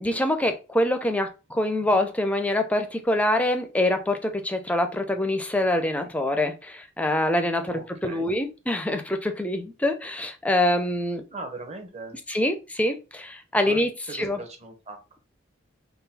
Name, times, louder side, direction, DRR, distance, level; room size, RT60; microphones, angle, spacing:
voice 1, 0.0-11.2 12.3-14.4, left 1 dB, 5° left, 0.4 m, -25 dB
voice 2, 7.7-8.3 11.3-12.2 13.6-13.8 14.1-15.2, right 3 dB, 35° right, 0.8 m, -39 dB
3.7 x 2.2 x 4.1 m
head